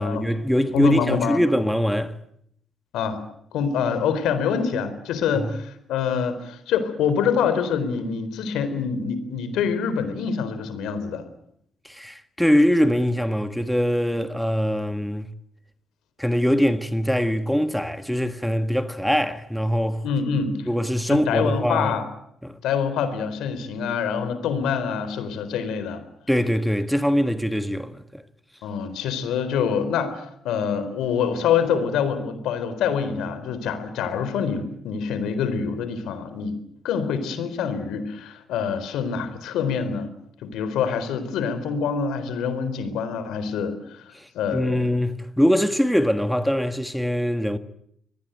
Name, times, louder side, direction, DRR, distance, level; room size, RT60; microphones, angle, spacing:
voice 1, 0.0-2.1 5.3-5.5 11.8-15.3 16.2-20.0 20.7-22.0 22.4-22.6 26.3-28.2 44.1-47.6, equal, ahead, 1.5 m, -23 dB
voice 2, 0.7-1.4 2.9-3.2 3.5-11.2 20.0-20.7 21.1-22.0 22.6-26.0 28.6-36.6 36.8-40.1 40.4-44.9, left 6 dB, 85° left, 4.0 m, -25 dB
24.5 x 19.0 x 9.2 m
cardioid pair, 90°, 0 cm